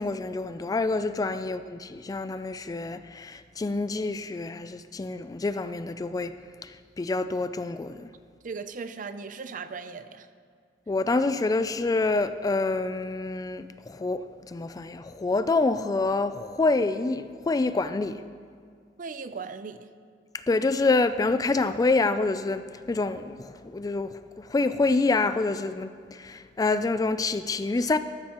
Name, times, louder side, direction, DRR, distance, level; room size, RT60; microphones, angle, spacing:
voice 1, 0.0-6.3 6.6-8.1 10.9-18.2 20.3-28.0, left 3 dB, 20° left, 0.3 m, -27 dB
voice 2, 8.4-10.3 19.0-19.8, right 5 dB, 50° right, 0.5 m, -37 dB
14.0 x 13.0 x 3.0 m
head